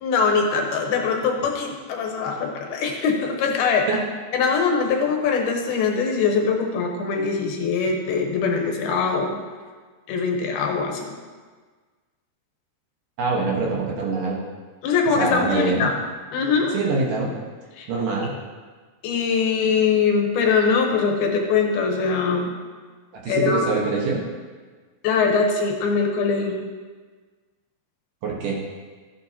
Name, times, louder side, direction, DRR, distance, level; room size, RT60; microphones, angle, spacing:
voice 1, 0.0-3.9 4.3-9.4 10.1-11.2 14.8-15.9 16.3-16.7 17.8-17.9 19.0-22.5 23.3-23.6 25.0-26.6, left 5 dB, 80° left, 2 dB, 3.0 m, -22 dB
voice 2, 13.2-14.4 15.2-15.9 16.7-17.3 17.9-18.3 23.2-24.2 28.2-28.6, right 3 dB, 65° right, -3 dB, 2.7 m, -24 dB
13.5 x 9.0 x 2.9 m, 1.4 s
omnidirectional pair, 4.4 m